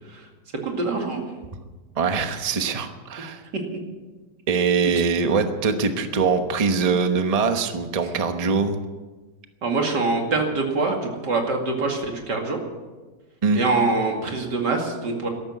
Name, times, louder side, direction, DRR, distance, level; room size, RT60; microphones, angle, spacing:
voice 1, 0.6-1.2 3.5-3.6 9.6-12.6 13.5-15.3, right 3 dB, 85° right, 2 dB, 3.0 m, -24 dB
voice 2, 2.0-3.4 4.5-8.8 13.4-13.6, right 5 dB, 25° right, 7 dB, 1.0 m, -22 dB
13.5 x 13.0 x 8.0 m, 1.3 s
omnidirectional pair, 1.8 m